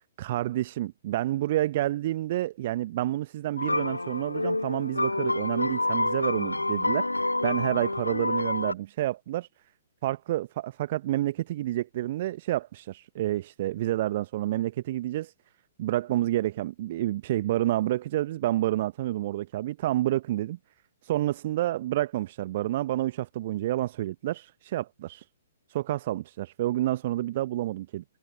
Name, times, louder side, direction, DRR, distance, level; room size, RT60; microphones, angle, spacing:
voice 1, 0.2-7.1 7.4-9.5 10.0-15.3 15.8-20.6 21.0-25.3 25.7-28.0, right 14 dB, 40° right, 1.0 m, -29 dB
sound 1, 3.6-8.7, left 2 dB, 80° left, 2.1 m, -28 dB
figure-of-eight pair, 120°, 0 cm